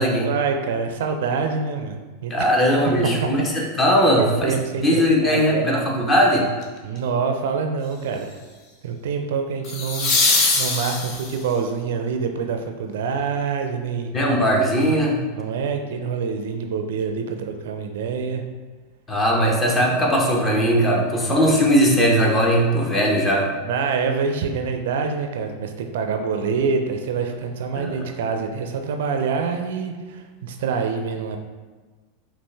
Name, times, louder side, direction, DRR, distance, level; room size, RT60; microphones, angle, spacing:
voice 1, 0.2-2.0 2.2-2.3 4.1-5.7 6.8-8.4 8.8-14.1 15.3-18.4 23.6-31.4, right 5 dB, 70° right, 5 dB, 0.4 m, -26 dB
voice 2, 2.3-4.5 4.8-6.5 14.1-15.2 19.1-23.5 27.8-28.0, equal, 20° left, -1 dB, 1.0 m, -19 dB
sound 1, 6.6-7.0 9.6-11.5 14.4-14.5, left 3 dB, 45° left, 0.8 m, -22 dB
5.3 x 2.5 x 3.4 m, 1.3 s
hypercardioid pair, 95°, 0 cm